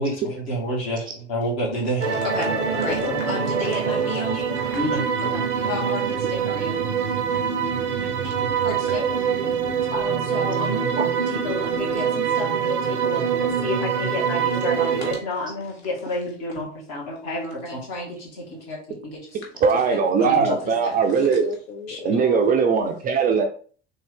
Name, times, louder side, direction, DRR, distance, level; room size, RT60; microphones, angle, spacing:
voice 1, 0.0-2.5 2.7-6.8 8.2-9.1 9.9-19.2 19.9-20.7 21.9-22.1, left 1 dB, 45° left, 1.8 m, -30 dB
voice 2, 2.0-5.0 5.4-5.9 6.3-6.4 6.7-8.3 16.6-16.7 20.9-22.8, left 4 dB, 65° left, 0.7 m, -36 dB
sound 1, 2.0-15.2, right 7 dB, 75° right, 0.6 m, -24 dB
voice 3, 19.6-21.5 22.0-23.4, right 5 dB, 25° right, 0.4 m, -20 dB
3.7 x 2.7 x 3.4 m
figure-of-eight pair, 65°, 35 cm